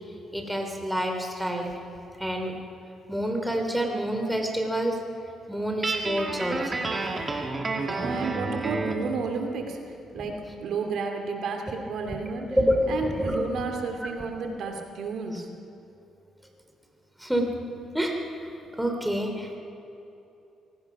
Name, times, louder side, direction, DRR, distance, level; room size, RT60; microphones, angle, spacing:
voice 1, 0.3-1.7 2.2-2.5 3.1-4.9 5.5-6.9 12.5-13.4 17.2-17.5 17.9-18.2 18.8-19.6, equal, 5° right, 2 dB, 3.3 m, -27 dB
Guitar, 5.8-9.1, right 3 dB, 30° right, 2.5 m, -30 dB
voice 2, 7.9-9.8 10.1-12.6 12.9-15.4, right 4 dB, 70° right, 4 dB, 2.7 m, -32 dB
25.0 x 18.0 x 6.1 m, 2.9 s
cardioid pair, 90°, 0 cm